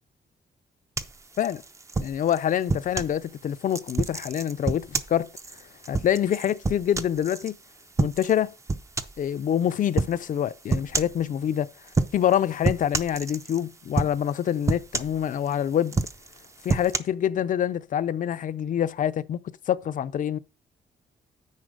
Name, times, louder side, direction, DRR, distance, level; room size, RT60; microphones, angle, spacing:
sound 1, 1.0-3.2 3.7-7.5 8.0-8.4 8.7-9.2 10.0-10.2 10.7-11.2 11.9-12.3 12.6-13.6 14.0-14.3 14.7-15.5 15.9-17.0, right 3 dB, 15° right, 0.5 m, -28 dB
voice 1, 2.0-5.3 5.9-7.6 8.0-8.5 9.2-11.7 12.1-16.0 16.6-19.4 19.7-20.4, left 10 dB, 50° left, 0.5 m, -26 dB
9.7 x 4.3 x 6.6 m
wide cardioid pair, 175°, 18 cm